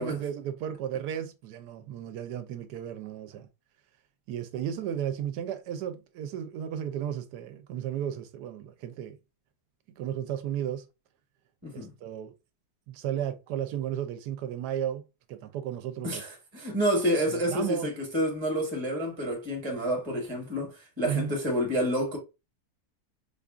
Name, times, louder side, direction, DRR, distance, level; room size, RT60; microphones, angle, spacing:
voice 1, 0.0-3.5 4.3-9.2 10.0-10.8 11.7-12.3 12.9-15.0 15.3-16.2 17.3-17.9 21.0-21.3, right 9 dB, 80° right, 1.1 m, -34 dB
voice 2, 16.0-22.2, equal, 20° right, 1.1 m, -29 dB
4.7 x 2.5 x 2.4 m
omnidirectional pair, 1.8 m